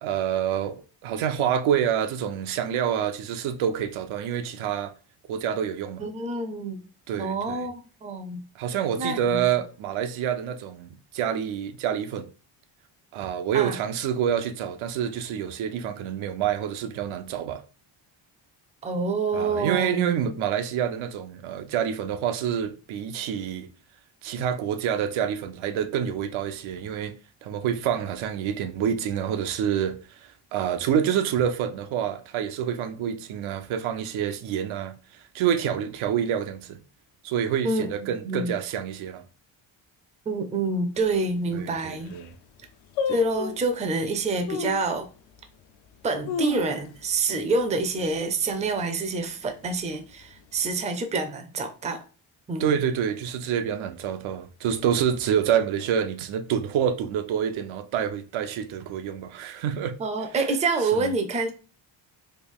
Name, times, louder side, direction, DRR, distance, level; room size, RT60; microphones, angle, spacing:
voice 1, 0.0-4.9 5.3-6.0 7.1-7.7 8.6-12.3 13.1-17.6 19.3-23.7 24.2-27.2 27.4-30.0 30.5-34.9 35.3-36.8 37.2-39.2 41.5-42.3 52.6-59.9 60.9-61.1, right 9 dB, 85° right, 0.6 m, -27 dB
voice 2, 6.0-6.8 7.2-8.4 9.0-9.5 13.5-13.8 18.8-20.2 37.6-38.6 40.3-42.2 43.1-45.1 46.0-52.0 52.5-52.7 60.0-61.5, right 3 dB, 15° right, 0.4 m, -27 dB
sound 1, 40.9-41.0 41.7-41.8 42.0-42.4 43.0-43.7 44.5-44.9 45.4-45.5 46.0-47.1 47.4-47.5 47.9-48.2 48.6-49.0 49.6-50.4 50.7-50.8, left 6 dB, 80° left, 0.5 m, -31 dB
3.2 x 2.3 x 3.5 m
cardioid pair, 130°, 47 cm